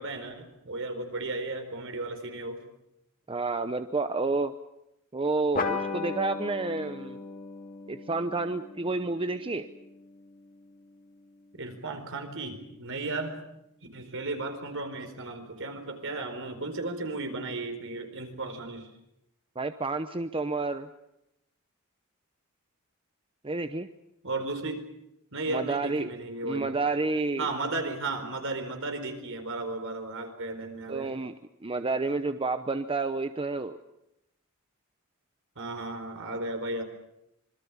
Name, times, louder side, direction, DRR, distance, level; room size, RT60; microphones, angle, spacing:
voice 1, 0.0-2.6 11.5-13.4 13.9-18.9 24.2-24.9 25.3-26.7 27.4-31.1 35.6-36.8, right 2 dB, 65° right, 6 dB, 4.5 m, -34 dB
voice 2, 3.3-4.5 5.1-7.2 7.9-9.7 19.6-20.9 23.4-23.9 25.5-26.1 26.4-27.5 30.9-31.3 31.6-33.8, right 3 dB, 25° right, 10 dB, 0.8 m, -30 dB
sound 1, 5.5-10.5, left 4 dB, 40° left, 2.6 m, -37 dB
26.0 x 22.0 x 7.3 m, 0.83 s
head